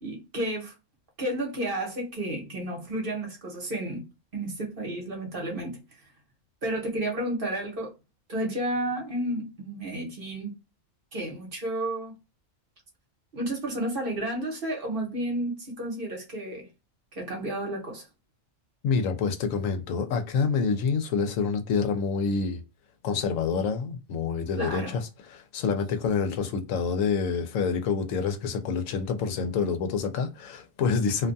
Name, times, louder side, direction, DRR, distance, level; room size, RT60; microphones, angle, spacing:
voice 1, 0.0-0.7 1.2-4.0 4.3-5.8 6.6-7.9 8.3-10.5 11.1-12.1 13.3-16.7 17.1-18.0 24.6-24.9, right 1 dB, 45° right, 1.0 m, -31 dB
voice 2, 18.8-22.6 23.0-31.3, left 5 dB, 85° left, 1.0 m, -27 dB
2.5 x 2.2 x 2.5 m
omnidirectional pair, 1.3 m